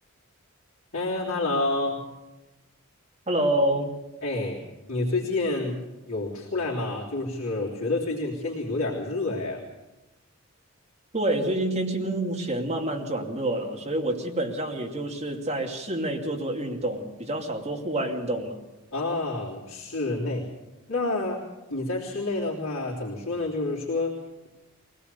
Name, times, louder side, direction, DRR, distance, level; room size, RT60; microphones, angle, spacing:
voice 1, 0.9-2.1 4.2-4.6 4.9-5.8 6.1-9.6 18.9-20.5 20.9-21.4 21.7-24.5, left 2 dB, 60° left, -7 dB, 3.4 m, -28 dB
voice 2, 3.3-3.9 11.1-18.6, right 1 dB, 30° right, 1 dB, 2.5 m, -28 dB
23.0 x 18.0 x 6.9 m, 1.0 s
head